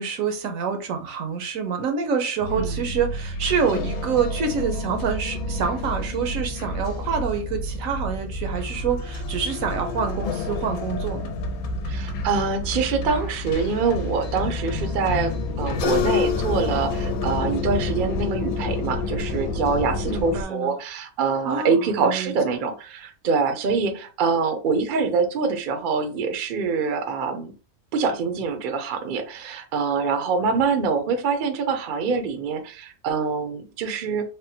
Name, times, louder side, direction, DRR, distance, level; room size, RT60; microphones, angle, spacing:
voice 1, 0.0-11.3 20.1-20.7 21.4-22.3, right 6 dB, 75° right, 1.0 m, -27 dB
sound 1, 2.4-20.4, left 2 dB, 85° left, 1.1 m, -28 dB
voice 2, 2.6-2.9 11.9-27.5 27.9-34.2, right 5 dB, 60° right, 0.5 m, -25 dB
3.5 x 2.1 x 2.7 m
omnidirectional pair, 1.5 m